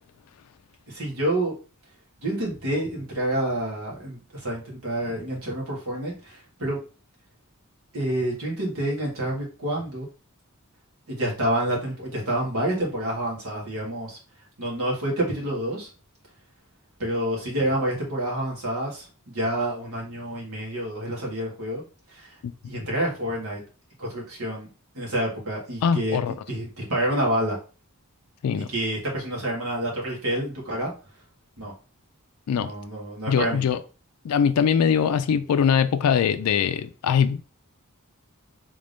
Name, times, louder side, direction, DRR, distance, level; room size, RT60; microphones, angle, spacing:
voice 1, 0.9-1.5 2.2-6.8 7.9-10.1 11.1-14.2 14.6-15.9 17.0-19.1 19.3-21.8 22.1-22.4 22.6-23.6 24.0-24.7 24.9-26.2 26.5-27.6 28.7-30.9 31.6-31.7 32.5-33.6, right 1 dB, 65° right, 1.7 m, -28 dB
voice 2, 25.8-26.3 28.4-28.7 32.5-32.7 33.3-33.8 34.2-37.5, left 7 dB, 80° left, 0.3 m, -22 dB
3.6 x 2.6 x 3.4 m
head